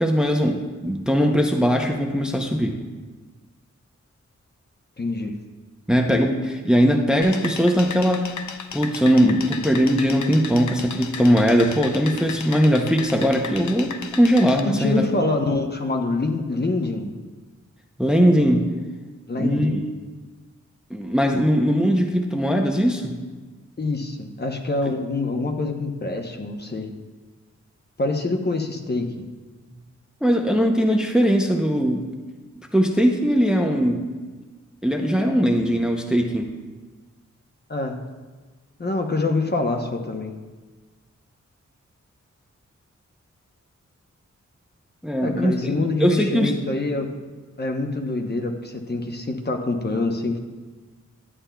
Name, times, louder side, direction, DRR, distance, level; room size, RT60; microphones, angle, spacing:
voice 1, 0.0-2.8 5.9-8.3 8.7-15.0 18.0-18.7 19.4-19.8 20.9-23.1 30.2-32.1 32.7-34.0 34.8-36.5 45.0-45.7 46.0-46.5, equal, 5° right, 2 dB, 0.7 m, -20 dB
voice 2, 5.0-5.3 14.7-17.1 19.3-19.8 23.8-26.9 28.0-29.1 37.7-38.0 38.8-40.3 45.2-47.1 47.6-50.4, left 2 dB, 35° left, 3 dB, 0.9 m, -25 dB
sound 1, 7.2-14.6, left 6 dB, 80° left, 0.5 m, -35 dB
11.0 x 8.5 x 2.3 m, 1.3 s
wide cardioid pair, 90°, 29 cm